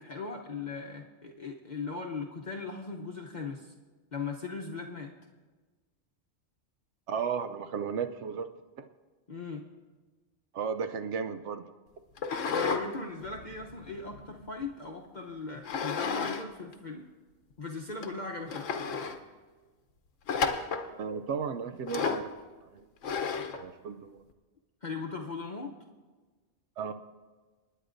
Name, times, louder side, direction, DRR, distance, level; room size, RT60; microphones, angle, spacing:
voice 1, 0.0-3.7 4.1-5.1 9.3-9.6 12.5-17.1 17.6-18.7 24.8-25.7, left 4 dB, 45° left, 0 dB, 0.8 m, -39 dB
voice 2, 7.1-8.5 8.8-8.9 10.5-11.6 20.8-22.3 22.7-22.9 23.5-24.2 26.8-27.0, right 6 dB, 75° right, 9 dB, 0.9 m, -34 dB
sound 1, 12.2-12.8 13.2-14.6 15.6-16.4 16.7-16.8 17.5-17.6 18.0-18.1 18.5-19.2 20.3-20.9 21.9-22.3 23.0-23.6, left 5 dB, 85° left, 1.2 m, -32 dB
29.0 x 9.9 x 2.6 m, 1.3 s
omnidirectional pair, 1.3 m